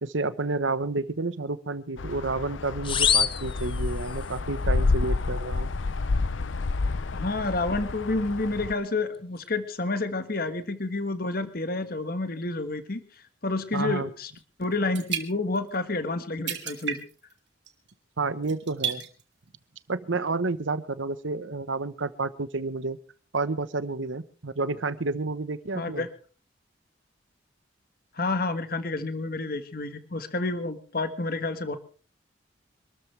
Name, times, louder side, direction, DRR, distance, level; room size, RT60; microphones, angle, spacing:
voice 1, 0.0-5.7 13.7-14.1 18.2-19.0 19.9-23.0 23.3-26.1, right 3 dB, 85° right, 14 dB, 1.1 m, -30 dB
sound 1, 2.0-8.7, left 3 dB, 85° left, 0.7 m, -29 dB
sound 2, 2.8-4.4, left 8 dB, 25° left, 0.7 m, -26 dB
voice 2, 7.1-14.3 14.6-17.0 25.7-26.1 28.1-31.8, left 3 dB, 50° left, 10 dB, 1.5 m, -29 dB
sound 3, 14.4-14.5 14.7-15.7 16.1-16.2 16.5-17.3 17.6-17.9 18.4-19.2 19.8-19.9, right 8 dB, 65° right, 2.5 m, -33 dB
26.0 x 13.5 x 3.4 m, 0.38 s
head